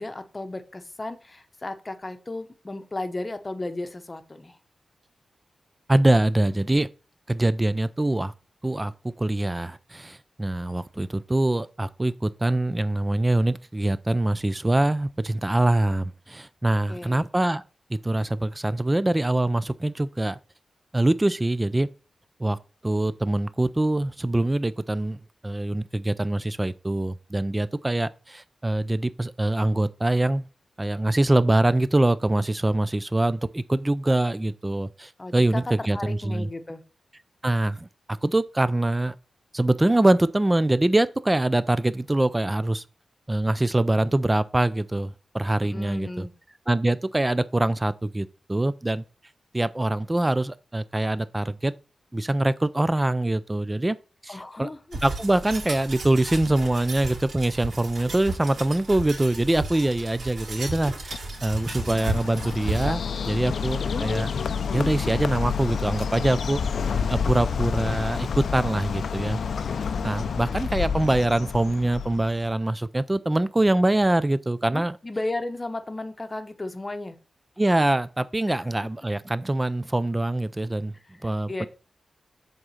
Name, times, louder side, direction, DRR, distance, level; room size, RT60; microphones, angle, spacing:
voice 1, 0.0-4.6 16.9-17.3 35.2-36.8 45.6-46.3 54.3-55.0 63.7-64.0 74.7-77.2 78.5-78.6 81.0-81.7, left 2 dB, 20° left, 0.8 m, -34 dB
voice 2, 5.9-6.9 7.3-8.3 8.6-17.6 17.9-20.4 20.9-21.9 22.4-22.6 22.8-30.5 30.8-36.5 37.4-39.1 39.5-42.8 43.3-46.2 46.7-49.0 49.5-51.7 52.1-54.0 54.2-54.7 55.0-64.3 64.7-66.6 67.1-69.4 70.0-75.0 77.6-80.9 81.2-81.7, right 1 dB, 15° right, 0.3 m, -24 dB
sound 1, 54.9-62.9, right 2 dB, 70° right, 3.1 m, -34 dB
Bird, 61.1-72.5, left 6 dB, 75° left, 0.5 m, -29 dB
7.9 x 3.6 x 5.6 m
wide cardioid pair, 150°, 0 cm